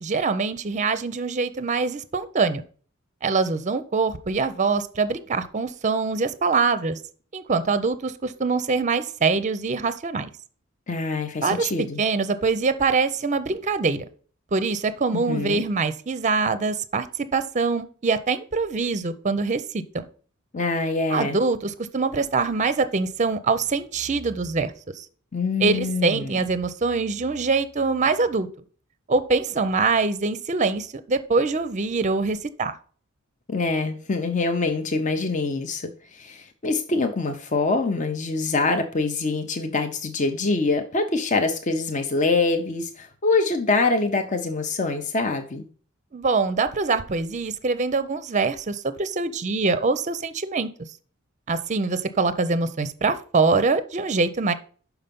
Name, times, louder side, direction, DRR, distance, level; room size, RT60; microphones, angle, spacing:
voice 1, 0.0-2.6 3.2-7.0 7.3-10.3 11.4-11.7 12.0-14.0 14.5-17.1 17.3-20.0 21.1-25.1 25.6-28.5 29.1-32.7 46.1-50.7 51.5-54.5, right 4 dB, 35° right, 12 dB, 0.5 m, -24 dB
voice 2, 10.9-12.0 15.1-15.6 20.5-21.4 25.3-26.4 33.5-45.7, left 3 dB, 35° left, 6 dB, 0.6 m, -25 dB
5.8 x 5.6 x 5.2 m, 0.43 s
head